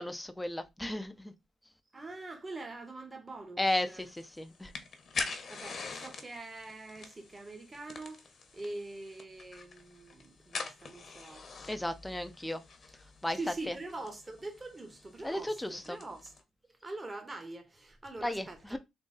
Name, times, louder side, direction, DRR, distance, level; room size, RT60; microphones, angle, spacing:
voice 1, 0.0-1.3 3.6-4.7 11.6-12.6 13.2-13.4 13.7-13.8 15.2-16.0 18.2-18.8, left 1 dB, 10° left, 0.6 m, -34 dB
voice 2, 1.9-4.0 5.5-8.2 8.5-11.4 13.3-16.3 16.8-18.8, right 2 dB, 25° right, 1.2 m, -44 dB
sound 1, 3.9-16.4, left 4 dB, 45° left, 1.0 m, -45 dB
3.8 x 2.7 x 3.9 m
cardioid pair, 90°, 0 cm